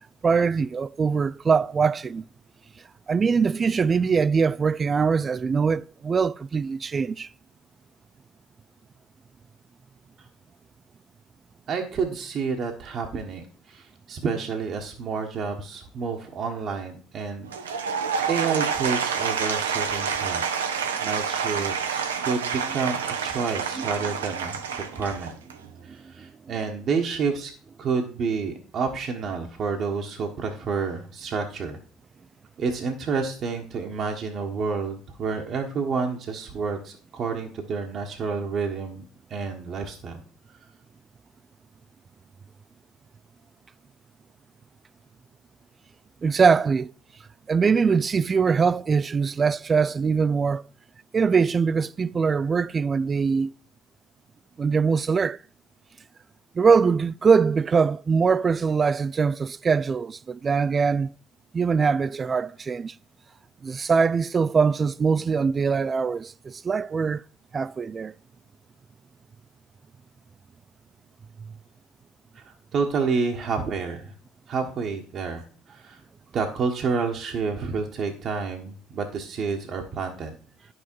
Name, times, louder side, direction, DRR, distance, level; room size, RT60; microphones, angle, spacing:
voice 1, 0.2-2.2 3.1-7.3 23.8-23.9 25.9-26.3 46.2-46.9 47.5-50.6 51.1-53.5 54.6-55.4 56.5-61.1 61.5-63.0 63.6-67.2 67.5-68.1, right 5 dB, 30° right, 0.3 m, -22 dB
voice 2, 11.7-17.5 18.2-20.6 21.0-25.3 25.8-27.5 27.8-31.8 32.6-39.0 39.3-40.2 72.3-74.1 74.5-76.0 76.3-80.3, right 5 dB, 50° right, 1.3 m, -29 dB
Applause / Crowd, 17.4-25.7, right 6 dB, 90° right, 0.8 m, -28 dB
10.5 x 6.2 x 4.6 m
hypercardioid pair, 65°, 0 cm